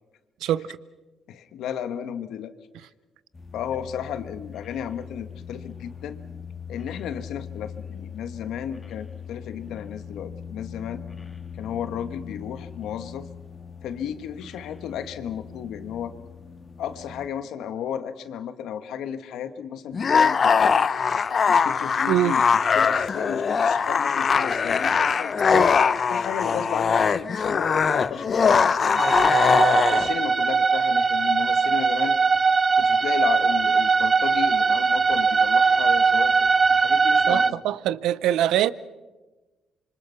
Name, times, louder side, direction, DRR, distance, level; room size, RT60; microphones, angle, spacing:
voice 1, 0.4-0.8 22.1-22.4 25.5-25.7 37.3-38.7, right 12 dB, 85° right, 0.7 m, -23 dB
voice 2, 1.3-2.5 3.5-6.2 6.7-11.0 11.6-13.3 13.8-16.1 16.8-20.7 21.5-22.4 22.7-25.3 26.1-29.0 29.6-32.2 32.8-36.3 36.7-37.6, left 9 dB, 80° left, 1.5 m, -33 dB
sound 1, 3.3-17.3, left 7 dB, 25° left, 1.8 m, -41 dB
sound 2, 19.9-30.1, left 6 dB, 45° left, 0.8 m, -21 dB
sound 3, 29.0-37.5, right 5 dB, 35° right, 0.7 m, -20 dB
27.0 x 25.0 x 5.9 m
cardioid pair, 90°, 0 cm